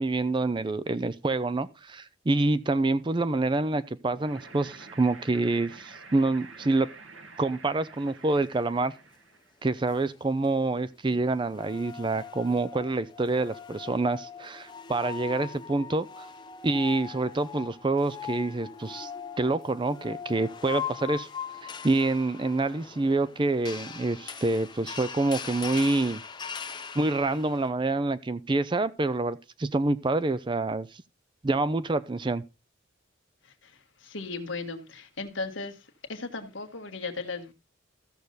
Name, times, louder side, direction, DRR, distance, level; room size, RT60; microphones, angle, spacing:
voice 1, 0.0-6.9 7.4-8.9 9.6-16.3 16.6-19.1 19.4-21.3 21.6-26.2 27.0-31.0 31.4-32.4, right 2 dB, 25° right, 0.4 m, -27 dB
sound 1, 4.1-9.6, right 4 dB, 75° right, 1.9 m, -48 dB
sound 2, 9.9-10.0 11.4-27.7, left 7 dB, 20° left, 0.9 m, -40 dB
voice 2, 33.4-35.8 36.1-37.5, left 3 dB, 70° left, 1.6 m, -36 dB
14.0 x 6.6 x 3.9 m
head